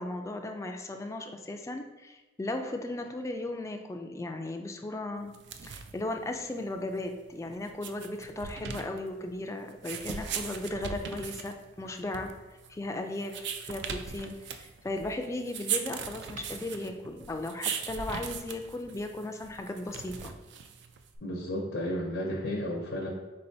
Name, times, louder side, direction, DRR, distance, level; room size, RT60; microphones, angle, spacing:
voice 1, 0.0-5.3 5.6-12.3 12.7-20.3, left 2 dB, 15° left, 5 dB, 0.3 m, -36 dB
sound 1, 5.3-21.2, right 7 dB, 65° right, 0.3 m, -39 dB
voice 2, 21.2-23.1, equal, 85° left, -2 dB, 0.7 m, -33 dB
4.2 x 3.8 x 2.7 m, 1.2 s
head